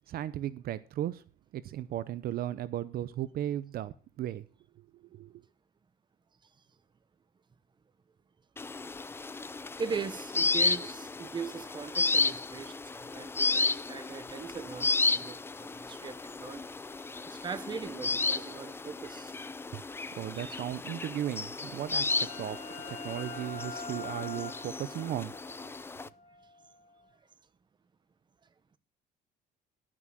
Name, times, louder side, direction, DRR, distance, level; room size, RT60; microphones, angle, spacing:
voice 1, 0.1-1.2 1.5-4.5 4.8-5.4 19.7-19.8 20.1-22.6 22.9-25.3, right 12 dB, 65° right, 0.6 m, -36 dB
sound 1, 8.6-26.1, left 3 dB, 15° left, 0.4 m, -33 dB
voice 2, 9.8-16.6 17.2-19.3 20.3-20.5, right 5 dB, 25° right, 0.9 m, -40 dB
sound 2, 21.5-27.0, left 3 dB, 40° left, 3.0 m, -45 dB
12.0 x 6.1 x 6.1 m
cardioid pair, 110°, 17 cm